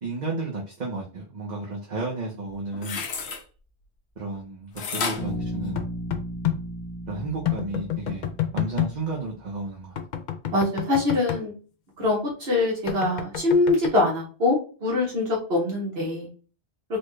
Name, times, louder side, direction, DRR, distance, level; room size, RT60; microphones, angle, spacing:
voice 1, 0.0-3.0 4.2-5.8 7.1-10.0, right 3 dB, 45° right, 0.9 m, -33 dB
sound 1, 2.5-3.4 4.8-6.3 6.8-6.9, left 5 dB, 75° left, 1.0 m, -32 dB
Bass guitar, 5.2-9.2, equal, 5° left, 1.0 m, -35 dB
sound 2, 5.8-6.6 7.4-8.9 10.0-11.4 12.9-13.9, left 11 dB, 55° left, 0.5 m, -28 dB
voice 2, 10.5-11.5 12.0-16.3, left 2 dB, 65° right, 1.5 m, -23 dB
4.3 x 2.3 x 3.1 m
omnidirectional pair, 1.1 m